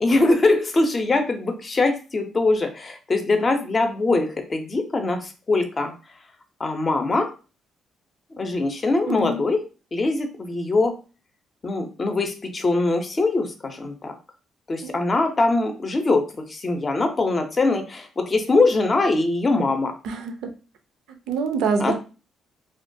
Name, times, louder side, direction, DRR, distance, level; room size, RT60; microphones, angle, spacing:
voice 1, 0.0-5.9 6.6-7.3 8.3-9.6 9.9-11.0 11.6-14.2 14.7-16.2 16.5-19.9 21.8-22.0, left 3 dB, 35° left, 5 dB, 0.5 m, -22 dB
voice 2, 9.1-9.4 14.8-14.9 20.0-20.5 21.3-22.0, right 4 dB, 90° right, 5 dB, 0.4 m, -25 dB
2.4 x 2.2 x 2.5 m, 0.34 s
cardioid pair, 90°, 0 cm